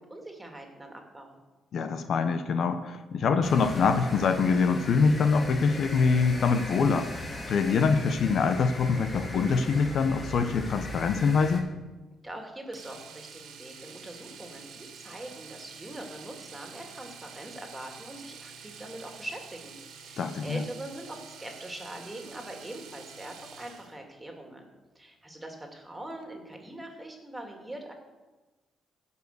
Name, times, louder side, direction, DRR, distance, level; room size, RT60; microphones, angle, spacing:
voice 1, 0.0-1.4 12.2-24.7 24.9-27.9, right 1 dB, 15° right, 2 dB, 2.6 m, -42 dB
voice 2, 1.7-7.1 7.5-11.7 20.2-20.6, left 5 dB, 60° left, 8 dB, 0.9 m, -24 dB
sound 1, 3.4-11.6, left 1 dB, 30° left, 2.6 m, -39 dB
Domestic sounds home sounds, 12.7-24.0 26.1-26.2 26.5-26.6, right 6 dB, 80° right, 1.5 m, -48 dB
16.0 x 5.6 x 6.8 m, 1.2 s
cardioid pair, 90°, 0 cm